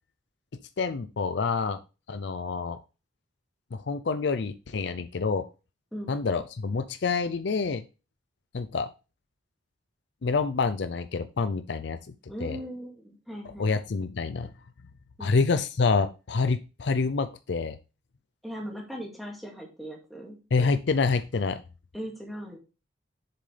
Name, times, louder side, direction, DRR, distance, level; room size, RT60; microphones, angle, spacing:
voice 1, 0.8-1.8 2.1-2.8 3.7-5.5 6.1-7.8 8.5-8.9 10.2-12.0 12.4-12.6 13.6-14.5 15.2-17.8 20.5-21.6, left 4 dB, 60° left, 11 dB, 0.5 m, -27 dB
voice 2, 12.3-13.7 15.2-15.4 18.4-20.4 21.9-22.6, equal, ahead, -1 dB, 2.1 m, -39 dB
7.6 x 6.7 x 3.3 m, 0.31 s
head